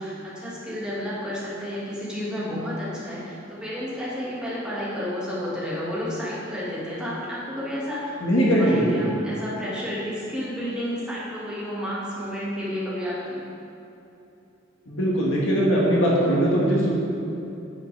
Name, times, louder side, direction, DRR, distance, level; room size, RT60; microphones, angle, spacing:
voice 1, 0.0-13.4, equal, 5° right, -8 dB, 2.0 m, -31 dB
voice 2, 8.2-9.1 14.9-16.9, equal, 65° left, -4 dB, 1.8 m, -20 dB
9.3 x 7.8 x 3.4 m, 2.9 s
head